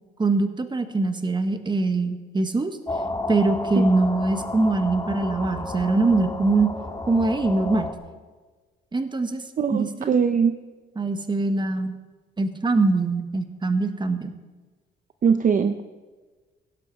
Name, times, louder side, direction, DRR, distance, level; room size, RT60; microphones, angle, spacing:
voice 1, 0.2-2.8 3.3-6.7 7.1-7.9 8.9-9.4 9.7-10.1 11.0-11.9 12.4-14.3, right 3 dB, 25° right, 8 dB, 1.3 m, -23 dB
sound 1, 2.9-7.9, left 2 dB, 20° left, 1.7 m, -32 dB
voice 2, 3.7-4.1 9.6-10.6 15.2-15.8, right 6 dB, 40° right, 9 dB, 0.7 m, -21 dB
16.0 x 11.5 x 4.7 m, 1.3 s
cardioid pair, 90°, 20 cm